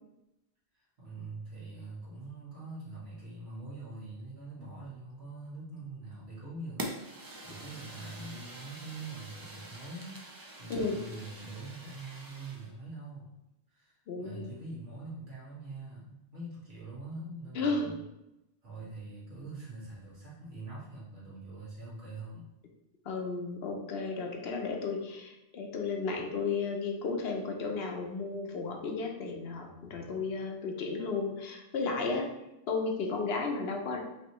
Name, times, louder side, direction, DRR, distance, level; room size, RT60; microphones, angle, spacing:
voice 1, 1.0-10.2 10.6-13.3 13.7-18.0 18.6-22.5, right 2 dB, 75° right, -8 dB, 2.1 m, -44 dB
Fire, 6.8-12.7, right 1 dB, 30° right, 0.4 m, -45 dB
voice 2, 14.1-14.5 17.5-17.9 23.0-32.3 32.7-34.0, left 4 dB, 70° left, 2 dB, 0.9 m, -33 dB
5.3 x 2.9 x 3.0 m, 0.91 s
omnidirectional pair, 1.1 m